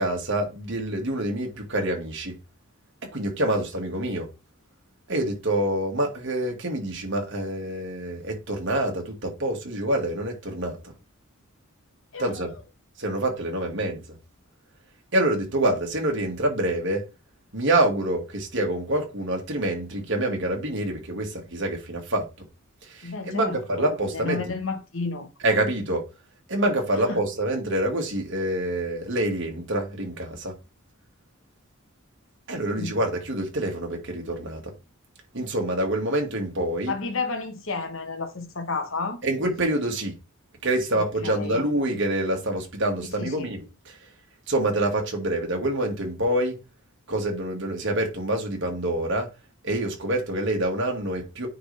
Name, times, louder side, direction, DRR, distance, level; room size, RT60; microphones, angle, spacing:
voice 1, 0.0-2.3 3.1-4.3 5.1-10.8 12.2-12.5 13.0-14.0 15.1-17.0 17.5-22.3 22.9-24.4 25.4-26.0 26.5-30.5 32.5-34.7 35.3-36.9 39.2-40.1 40.6-44.0 44.5-46.6 47.1-49.3 49.6-51.5, right 1 dB, 55° right, 2.0 m, -26 dB
voice 2, 12.1-12.5 23.0-25.3 27.1-27.2 32.8-33.0 36.9-39.2 40.9-41.6 43.2-43.5, left 4 dB, 65° left, 1.3 m, -32 dB
9.3 x 4.0 x 3.4 m
head